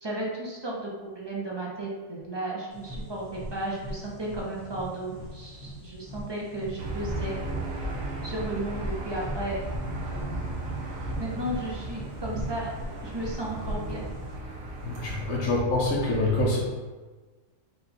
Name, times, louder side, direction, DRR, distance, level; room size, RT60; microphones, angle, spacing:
voice 1, 0.0-7.3 8.2-9.6 11.2-12.7 13.0-14.0, right 1 dB, 45° right, -4 dB, 0.3 m, -34 dB
sound 1, 2.7-14.3, right 1 dB, 60° left, 1.5 m, -40 dB
Aircraft / Engine, 6.8-15.4, right 1 dB, 75° right, 1.1 m, -36 dB
voice 2, 14.8-16.6, left 2 dB, 75° left, -4 dB, 1.2 m, -25 dB
3.9 x 2.2 x 4.1 m, 1.3 s
omnidirectional pair, 1.4 m